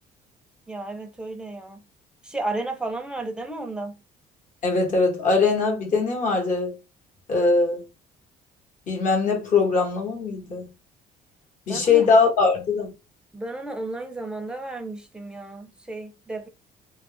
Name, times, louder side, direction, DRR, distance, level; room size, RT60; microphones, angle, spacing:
voice 1, 0.7-1.9 2.2-4.0 11.7-12.1 13.3-16.5, right 2 dB, 5° right, 0.5 m, -33 dB
voice 2, 4.6-6.7 7.3-7.8 8.9-10.7 11.7-12.9, left 4 dB, 50° left, 1.1 m, -21 dB
2.3 x 2.1 x 3.8 m
cardioid pair, 110°, 17 cm